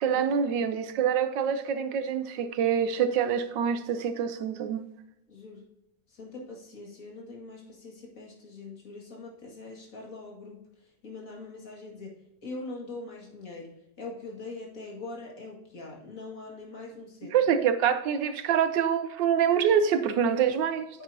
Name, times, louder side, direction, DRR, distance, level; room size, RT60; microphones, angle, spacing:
voice 1, 0.0-4.8 17.2-20.9, right 8 dB, 85° right, 10 dB, 1.5 m, -26 dB
voice 2, 5.3-5.6 6.1-10.6 11.0-13.7 14.0-17.4, left 3 dB, 50° left, -2 dB, 2.5 m, -42 dB
9.2 x 8.0 x 2.8 m, 0.88 s
omnidirectional pair, 1.9 m